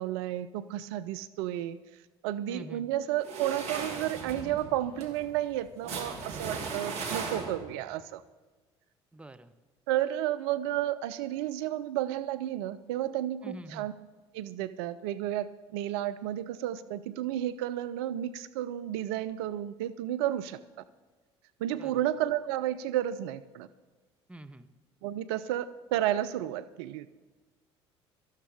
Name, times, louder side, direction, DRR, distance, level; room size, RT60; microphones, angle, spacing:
voice 1, 0.0-1.8 2.2-8.2 9.9-13.9 14.3-20.6 21.6-23.7 25.0-27.1, right 12 dB, 65° right, 13 dB, 0.5 m, -32 dB
voice 2, 2.5-2.9 9.1-9.5 13.4-13.9 21.8-22.0 24.3-24.7, right 1 dB, 10° right, 9 dB, 0.8 m, -45 dB
sound 1, 3.2-7.8, right 4 dB, 50° right, 2.4 m, -37 dB
18.0 x 13.5 x 3.5 m, 1.3 s
figure-of-eight pair, 60°, 14 cm